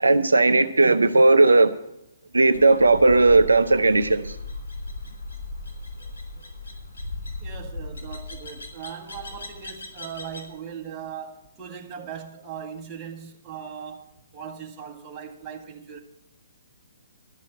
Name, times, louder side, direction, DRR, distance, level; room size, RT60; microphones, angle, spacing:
voice 1, 0.0-1.7 2.3-4.4, right 3 dB, 75° right, 0.6 m, -17 dB
sound 1, 2.5-10.5, left 2 dB, 70° left, 3.4 m, -37 dB
voice 2, 7.4-16.0, right 7 dB, 20° right, 1.9 m, -39 dB
12.5 x 6.4 x 9.4 m
figure-of-eight pair, 130°, 0 cm